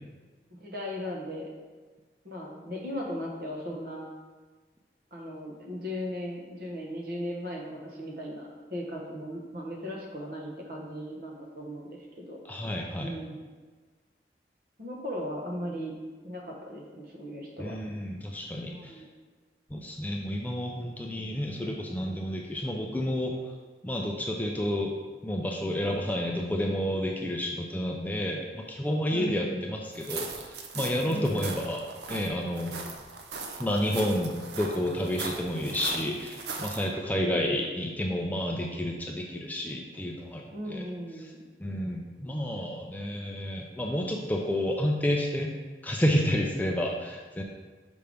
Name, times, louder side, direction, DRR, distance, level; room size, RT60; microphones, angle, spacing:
voice 1, 0.6-1.5 2.2-4.1 5.1-12.4 13.0-13.4 14.8-15.9 16.2-17.7 18.6-19.1 29.1-29.8 31.1-31.5 37.0-37.6 40.5-41.5, equal, 55° right, -1 dB, 1.2 m, -37 dB
voice 2, 12.4-13.1 17.6-18.9 19.7-23.3 23.8-24.9 25.2-31.8 32.1-32.8 33.6-40.8 41.6-45.5 45.8-47.4, left 1 dB, 10° left, 0 dB, 0.4 m, -30 dB
sound 1, 29.9-36.9, right 4 dB, 75° right, 0.6 m, -39 dB
5.6 x 5.2 x 3.4 m, 1.4 s
head